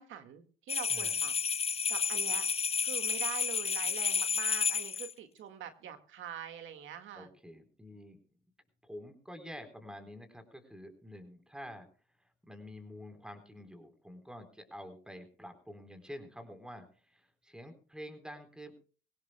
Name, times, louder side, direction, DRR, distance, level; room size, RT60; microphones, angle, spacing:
voice 1, 0.0-1.3 1.9-2.5 2.8-7.3, right 9 dB, 80° right, 8 dB, 1.9 m, -44 dB
sound 1, 0.7-5.1, left 6 dB, 30° left, 0.7 m, -31 dB
voice 2, 0.9-1.2 7.1-8.2 8.8-11.9 12.2-18.8, equal, 5° right, 7 dB, 4.1 m, -48 dB
23.0 x 17.5 x 2.2 m, 0.39 s
cardioid pair, 90°, 20 cm